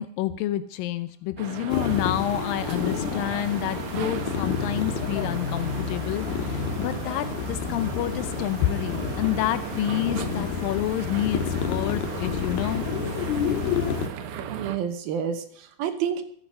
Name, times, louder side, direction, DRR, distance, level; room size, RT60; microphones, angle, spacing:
voice 1, 0.0-12.9, left 13 dB, 85° left, 12 dB, 2.0 m, -29 dB
sound 1, 1.4-14.8, right 9 dB, 85° right, 3.5 m, -36 dB
sound 2, 1.7-14.1, left 7 dB, 65° left, 3.0 m, -30 dB
voice 2, 14.5-16.2, right 8 dB, 70° right, 8 dB, 2.6 m, -29 dB
23.0 x 9.0 x 5.5 m, 0.64 s
omnidirectional pair, 5.0 m